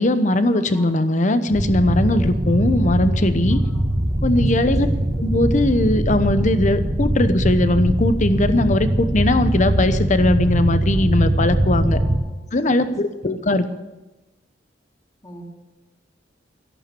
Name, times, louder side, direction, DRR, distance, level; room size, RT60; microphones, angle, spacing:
voice 1, 0.0-3.6 4.2-4.9 5.2-12.0 12.5-13.6, left 1 dB, 40° left, 11 dB, 0.9 m, -19 dB
voice 2, 0.5-1.1 2.2-2.3 2.8-2.9 3.5-3.9 4.5-4.9 11.8-12.3 12.6-12.9 15.2-15.4, equal, 20° left, -1 dB, 3.1 m, -42 dB
sound 1, 1.5-12.2, right 1 dB, 35° right, 1.7 m, -21 dB
13.5 x 11.5 x 6.9 m, 1.1 s
head